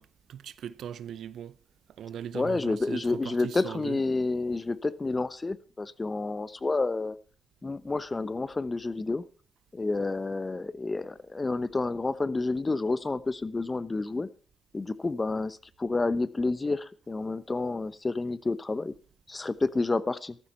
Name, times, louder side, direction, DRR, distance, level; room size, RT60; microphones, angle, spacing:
voice 1, 0.0-1.6 2.0-4.0, right 9 dB, 75° right, 0.6 m, -39 dB
voice 2, 2.3-7.2 7.6-9.2 9.7-14.3 14.7-18.9 19.3-20.4, left 3 dB, 30° left, 0.9 m, -29 dB
14.0 x 12.5 x 4.4 m
supercardioid pair, 65°, 0 cm